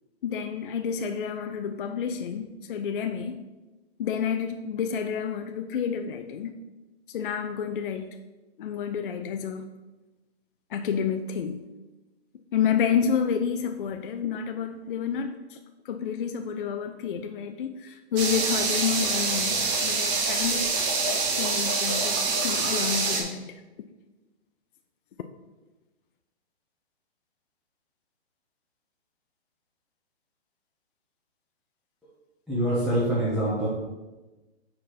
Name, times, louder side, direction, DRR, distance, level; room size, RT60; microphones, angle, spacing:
voice 1, 0.2-3.4 4.0-6.6 7.1-8.2 8.6-9.7 10.7-11.6 12.5-15.6 15.8-20.8 21.4-23.6, left 7 dB, 50° left, 7 dB, 0.4 m, -29 dB
sound 1, 18.2-23.2, right 4 dB, 30° right, 1.0 m, -26 dB
voice 2, 32.5-33.7, right 1 dB, ahead, -12 dB, 0.9 m, -25 dB
4.9 x 4.5 x 5.7 m, 1.1 s
hypercardioid pair, 155°, 33 cm